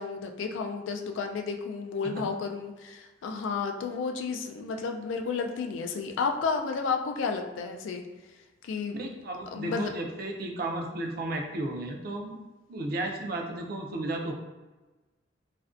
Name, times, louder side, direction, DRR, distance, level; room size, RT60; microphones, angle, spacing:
voice 1, 0.0-8.0 8.6-9.0 9.5-9.9, left 5 dB, 90° left, 4 dB, 0.3 m, -32 dB
voice 2, 8.9-12.4 12.7-14.3, right 1 dB, 50° right, 2 dB, 0.4 m, -33 dB
2.4 x 2.1 x 2.4 m, 1.2 s
head